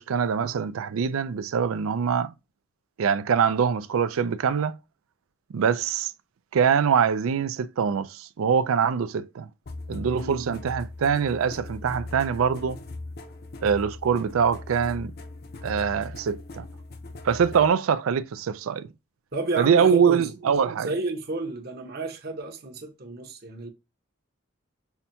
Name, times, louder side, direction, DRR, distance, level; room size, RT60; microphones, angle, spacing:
voice 1, 0.0-2.3 3.0-4.8 5.5-6.1 6.5-9.5 9.9-12.8 13.6-15.1 15.6-16.6 17.2-18.9 19.6-20.9, right 7 dB, 85° right, 0.4 m, -24 dB
sound 1, 9.7-17.7, left 2 dB, 50° left, 0.6 m, -39 dB
voice 2, 10.0-10.5 19.3-20.2 20.8-23.7, right 2 dB, 50° right, 0.9 m, -31 dB
5.7 x 2.2 x 2.7 m
head